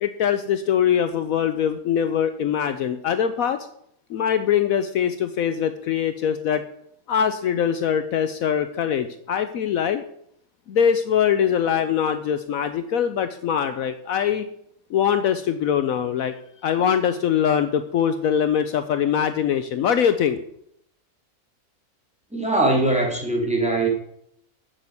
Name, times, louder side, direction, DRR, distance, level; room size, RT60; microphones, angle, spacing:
voice 1, 0.0-3.7 4.1-6.6 7.1-10.0 10.7-14.5 14.9-20.4, left 8 dB, 70° left, 10 dB, 1.1 m, -22 dB
voice 2, 22.3-23.9, right 2 dB, 5° right, -1 dB, 2.8 m, -21 dB
7.6 x 7.3 x 8.0 m, 0.71 s
omnidirectional pair, 1.6 m